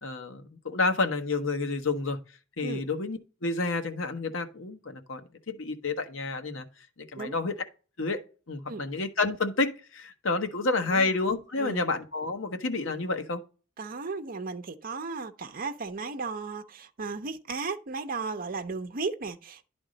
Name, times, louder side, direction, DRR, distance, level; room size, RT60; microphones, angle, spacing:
voice 1, 0.0-2.2 2.6-6.7 7.0-7.5 8.0-8.2 8.5-13.4, left 3 dB, 80° left, 1.1 m, -29 dB
voice 2, 11.6-11.9 13.8-19.7, right 4 dB, 45° right, 0.7 m, -35 dB
10.5 x 3.6 x 5.0 m
head